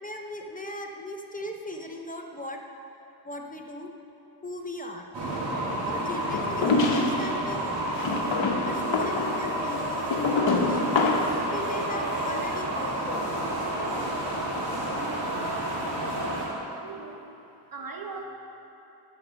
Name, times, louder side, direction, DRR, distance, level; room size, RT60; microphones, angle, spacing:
voice 1, 0.0-2.6 3.2-3.9 4.4-5.1 5.9-8.3 8.7-11.0 11.5-13.4, left 1 dB, 20° left, 2 dB, 0.6 m, -38 dB
sound 1, 5.1-16.5, right 1 dB, 80° right, 2.2 m, -30 dB
sound 2, 6.3-7.3 8.0-11.4, left 3 dB, 80° left, 0.9 m, -26 dB
voice 2, 16.8-17.3 17.7-18.2, right 4 dB, 50° right, 2 dB, 0.9 m, -39 dB
10.5 x 5.0 x 6.3 m, 2.9 s
wide cardioid pair, 115°, 44 cm